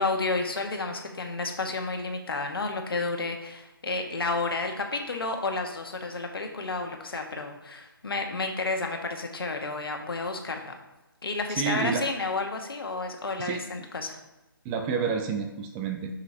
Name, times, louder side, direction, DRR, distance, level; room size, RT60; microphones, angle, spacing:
voice 1, 0.0-10.8 11.2-14.2, left 3 dB, 75° left, 3 dB, 1.3 m, -31 dB
voice 2, 11.6-12.0 13.4-13.6 14.6-16.1, right 6 dB, 15° right, 4 dB, 0.5 m, -29 dB
7.9 x 5.6 x 2.7 m, 1.0 s
figure-of-eight pair, 150°, 12 cm